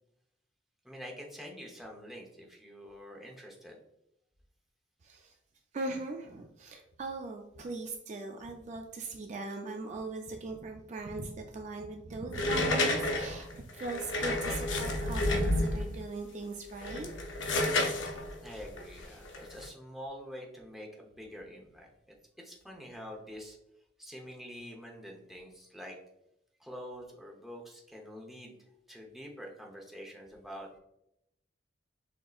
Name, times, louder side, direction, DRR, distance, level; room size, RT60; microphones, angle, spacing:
voice 1, 0.8-3.8 18.4-21.9 22.4-23.6 24.0-26.0 26.6-28.6 28.9-30.7, equal, ahead, -1 dB, 0.7 m, -46 dB
voice 2, 5.0-5.3 5.7-17.1, right 3 dB, 40° right, 3 dB, 0.4 m, -40 dB
sound 1, 12.3-16.0 16.7-19.7, left 2 dB, 85° left, 0.6 m, -30 dB
6.4 x 2.8 x 2.4 m, 0.82 s
head